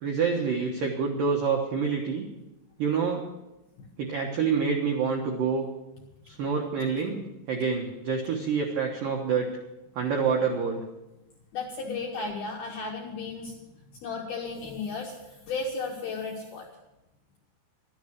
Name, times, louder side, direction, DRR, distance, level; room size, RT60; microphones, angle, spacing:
voice 1, 0.0-2.2 2.8-3.2 4.0-5.7 6.3-9.5 10.0-10.8, right 5 dB, 85° right, 1 dB, 1.9 m, -27 dB
voice 2, 11.5-13.7 14.0-16.7, left 4 dB, 75° left, -1 dB, 2.3 m, -34 dB
12.5 x 10.0 x 6.3 m, 0.95 s
omnidirectional pair, 5.9 m